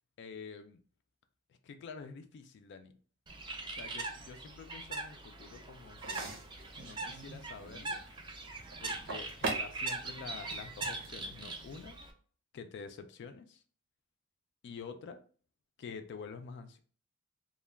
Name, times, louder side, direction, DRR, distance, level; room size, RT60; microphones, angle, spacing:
voice 1, 0.2-0.8 1.6-2.9 3.8-6.4 6.8-8.0 8.8-12.0 12.5-13.6 14.6-15.2 15.8-16.8, left 5 dB, 55° left, 8 dB, 0.3 m, -47 dB
Bird, 3.3-12.1, right 3 dB, 25° right, 0.4 m, -41 dB
sound 1, 6.0-11.9, right 3 dB, 65° right, 0.7 m, -43 dB
2.2 x 2.1 x 3.3 m, 0.43 s
head